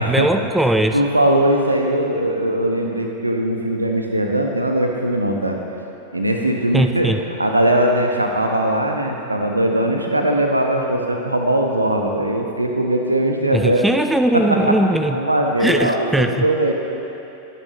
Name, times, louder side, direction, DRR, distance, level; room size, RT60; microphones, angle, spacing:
voice 1, 0.0-1.0 6.7-7.2 13.5-15.2 15.6-16.3, right 1 dB, 5° right, 7 dB, 0.5 m, -19 dB
voice 2, 0.9-5.6 6.1-13.8 14.3-14.8 15.1-16.7, right 1 dB, 85° right, 2 dB, 1.3 m, -20 dB
21.5 x 10.5 x 3.2 m, 3.0 s
figure-of-eight pair, 90°, 0 cm